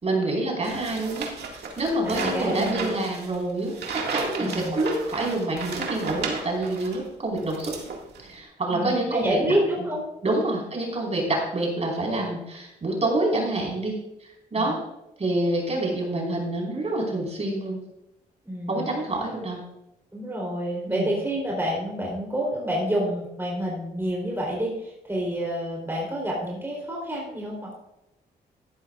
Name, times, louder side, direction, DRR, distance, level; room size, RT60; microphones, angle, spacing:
voice 1, 0.0-7.7 8.2-9.9 10.2-13.9 14.5-14.8 15.2-17.8 18.7-19.6 20.9-21.1, right 2 dB, 40° right, -1 dB, 4.6 m, -27 dB
sound 1, 0.6-7.0 7.4-8.3, right 4 dB, 75° right, 2.0 m, -34 dB
voice 2, 2.0-3.0 4.4-4.8 8.7-10.0 10.4-10.5 14.5-14.7 18.4-18.9 20.1-27.7, right 1 dB, 15° right, -3 dB, 3.6 m, -28 dB
14.5 x 11.0 x 2.4 m, 0.86 s
cardioid pair, 75°, 17 cm